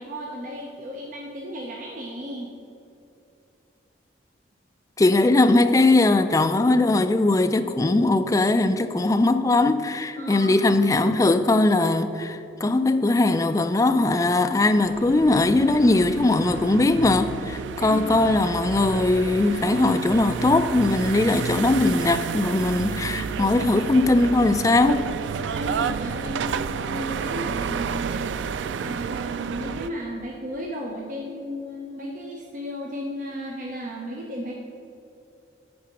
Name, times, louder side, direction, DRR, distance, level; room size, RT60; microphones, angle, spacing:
voice 1, 0.0-2.5 10.2-10.6 17.8-18.2 25.5-28.3 28.7-34.6, equal, 45° right, 0.7 m, -34 dB
voice 2, 5.0-25.1, left 2 dB, 20° left, 0.3 m, -20 dB
sound 1, 14.7-29.9, right 6 dB, 85° right, 0.3 m, -31 dB
8.6 x 5.0 x 5.8 m
head